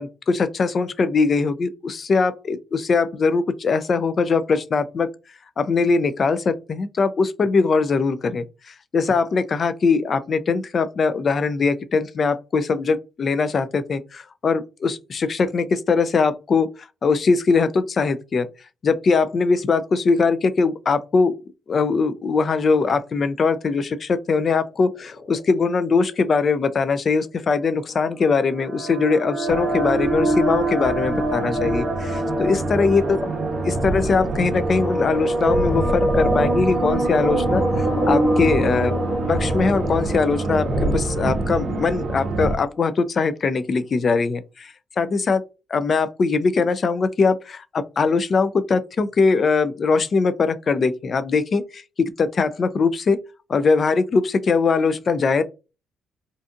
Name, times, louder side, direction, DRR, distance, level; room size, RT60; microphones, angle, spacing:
voice 1, 0.0-5.1 5.6-16.7 17.0-18.5 18.8-21.3 21.7-33.0 33.6-38.9 39.3-45.4 45.7-53.2 53.5-55.4, left 4 dB, 45° left, 0.3 m, -21 dB
Frog, 24.6-37.4 37.7-42.4, left 3 dB, 60° left, 0.9 m, -37 dB
sound 1, 27.9-42.0, right 1 dB, 15° right, 1.0 m, -25 dB
sound 2, 29.5-42.6, right 2 dB, 50° right, 0.5 m, -27 dB
2.5 x 2.3 x 2.5 m
cardioid pair, 90°, 0 cm